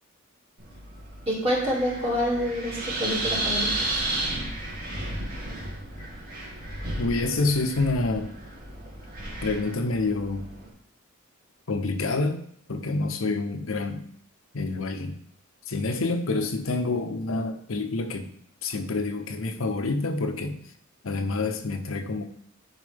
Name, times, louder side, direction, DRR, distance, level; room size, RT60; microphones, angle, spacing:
Wind, 0.6-10.7, right 1 dB, 50° right, 2.1 m, -33 dB
voice 1, 1.3-3.9, equal, 30° right, -5 dB, 2.2 m, -27 dB
voice 2, 7.0-8.3 9.4-10.5 11.7-12.4 12.7-14.0 14.5-15.2 15.7-18.3 18.6-20.6 21.0-22.2, left 3 dB, 80° left, 6 dB, 0.8 m, -27 dB
9.9 x 4.6 x 3.5 m, 0.65 s
head